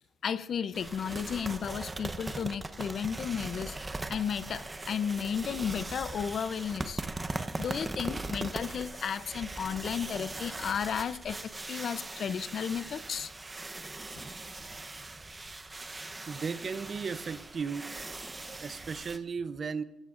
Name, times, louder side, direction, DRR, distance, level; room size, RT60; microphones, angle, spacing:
voice 1, 0.2-3.8 4.1-7.0 7.6-13.3, left 7 dB, 55° left, 15 dB, 0.6 m, -33 dB
sound 1, 0.7-19.2, right 2 dB, 20° right, 0.9 m, -40 dB
voice 2, 16.3-17.9 18.4-19.8, right 5 dB, 45° right, 13 dB, 0.7 m, -36 dB
23.0 x 16.5 x 2.5 m, 1.0 s
cardioid pair, 90°, 0 cm